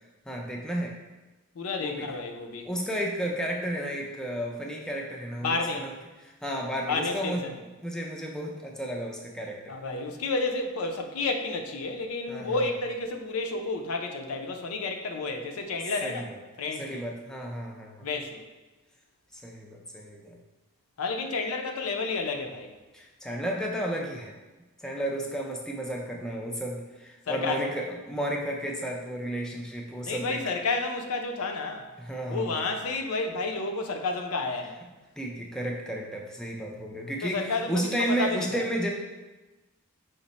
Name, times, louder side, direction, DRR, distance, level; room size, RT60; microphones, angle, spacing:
voice 1, 0.3-0.9 1.8-2.1 2.6-5.9 6.2-7.4 7.8-9.7 12.3-12.6 16.0-16.4 16.8-18.1 19.3-20.4 22.9-24.3 24.8-30.4 32.0-32.5 35.2-38.9, right 1 dB, 5° left, -1 dB, 0.3 m, -32 dB
voice 2, 1.6-2.7 5.4-5.9 6.9-7.6 9.7-16.2 16.6-17.0 18.0-18.4 21.0-22.7 27.3-27.7 30.0-31.9 32.3-34.8 37.2-38.6, left 3 dB, 90° left, 4 dB, 0.5 m, -31 dB
5.0 x 2.0 x 4.0 m, 1.1 s
head